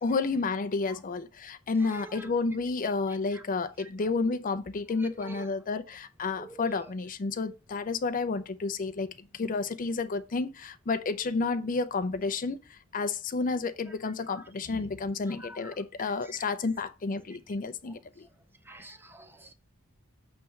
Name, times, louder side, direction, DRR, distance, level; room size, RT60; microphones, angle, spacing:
voice 1, 0.0-18.0, left 4 dB, 40° left, 0.5 m, -31 dB
voice 2, 1.8-2.3 3.3-3.4 3.8-3.9 5.0-5.5 6.2-6.8 14.3-14.4 15.3-15.7 16.2-16.4 17.9-18.0 18.7-19.5, right 1 dB, 10° right, 0.6 m, -46 dB
6.6 x 3.2 x 5.7 m
head